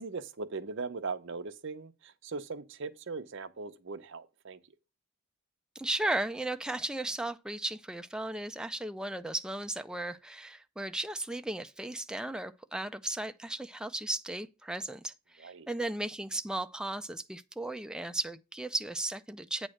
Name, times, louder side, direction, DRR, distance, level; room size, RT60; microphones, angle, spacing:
voice 1, 0.0-4.6 15.4-15.7, right 4 dB, 60° right, 0.7 m, -39 dB
voice 2, 5.8-19.7, right 1 dB, 5° right, 0.3 m, -35 dB
8.7 x 3.2 x 6.2 m
head